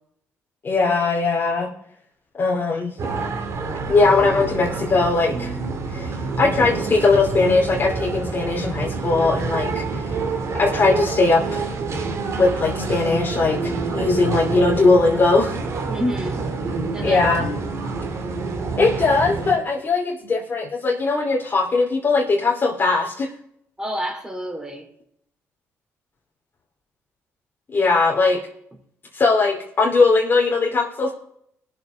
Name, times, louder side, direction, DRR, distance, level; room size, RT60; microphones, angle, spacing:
voice 1, 0.6-1.7 2.3-2.9 3.9-5.6 5.9-6.1 6.4-10.1 10.5-11.7 12.4-15.6 17.0-17.5 18.8-23.3 27.7-28.4 29.1-31.1, left 3 dB, 40° left, -3 dB, 2.7 m, -19 dB
sound 1, 3.0-19.6, right 4 dB, 55° right, 2.4 m, -27 dB
voice 2, 15.9-16.4 16.9-17.5 23.8-24.9, equal, 10° right, 3 dB, 3.6 m, -28 dB
19.0 x 7.2 x 4.0 m, 0.73 s
supercardioid pair, 75°, 6 cm